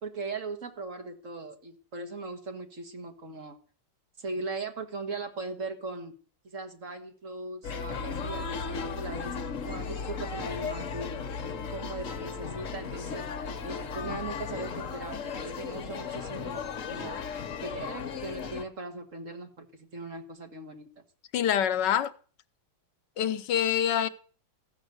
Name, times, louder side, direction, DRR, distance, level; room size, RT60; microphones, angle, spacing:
voice 1, 0.0-3.6 4.2-6.1 6.5-9.4 9.7-11.2 11.7-13.3 13.6-17.2 17.6-20.9, right 3 dB, 45° right, 1.8 m, -39 dB
sound 1, 7.6-18.6, left 5 dB, 50° left, 1.3 m, -36 dB
voice 2, 21.3-22.1 23.2-24.1, left 9 dB, 75° left, 1.4 m, -26 dB
14.5 x 6.2 x 8.0 m
omnidirectional pair, 1.9 m